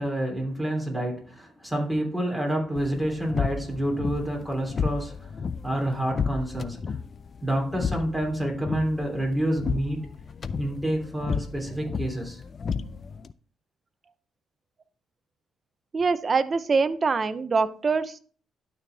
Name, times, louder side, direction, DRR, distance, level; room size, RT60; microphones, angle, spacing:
voice 1, 0.0-5.3 5.6-7.0 7.4-10.0 10.6-12.4 12.8-12.9, right 1 dB, 5° right, -1 dB, 3.3 m, -28 dB
sound 1, 2.8-13.3, left 6 dB, 45° left, 0.5 m, -33 dB
voice 2, 15.9-18.2, right 4 dB, 35° right, 13 dB, 0.7 m, -24 dB
12.0 x 4.3 x 3.4 m, 0.42 s
cardioid pair, 90°, 0 cm